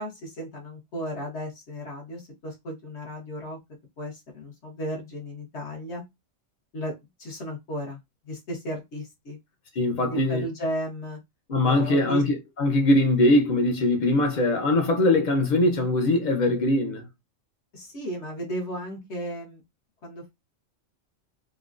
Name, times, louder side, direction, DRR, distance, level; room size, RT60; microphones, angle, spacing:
voice 1, 0.0-3.6 4.0-6.0 6.7-6.9 7.2-8.0 8.2-9.4 10.0-11.2 11.6-12.2 17.7-19.6 20.0-20.3, equal, 60° left, 1.4 m, -34 dB
voice 2, 9.8-10.5 11.5-17.1, left 1 dB, 45° left, 0.7 m, -22 dB
3.7 x 2.2 x 2.5 m
omnidirectional pair, 1.3 m